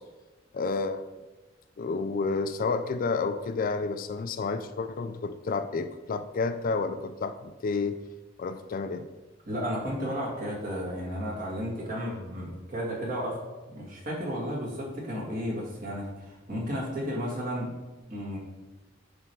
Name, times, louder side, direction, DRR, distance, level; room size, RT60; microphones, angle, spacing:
voice 1, 0.5-1.0 1.8-8.0 8.4-9.1, left 4 dB, 45° left, 11 dB, 0.3 m, -30 dB
voice 2, 9.5-13.4 13.7-17.7 18.1-18.4, equal, 45° right, -3 dB, 1.9 m, -33 dB
9.9 x 3.4 x 4.5 m, 1.2 s
head